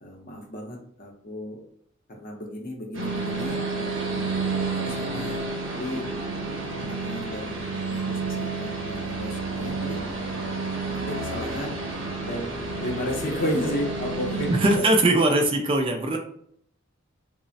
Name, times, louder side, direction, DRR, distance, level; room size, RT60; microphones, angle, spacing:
voice 1, 0.0-1.6 2.1-3.6 4.8-5.4 5.8-6.1 6.7-10.2 11.1-11.9 12.2-14.8, equal, 45° left, 1 dB, 0.6 m, -33 dB
sound 1, 2.9-14.8, right 3 dB, 75° right, 0.8 m, -30 dB
voice 2, 14.5-16.2, right 2 dB, 30° right, 4 dB, 0.3 m, -21 dB
3.1 x 2.0 x 2.6 m, 0.66 s
head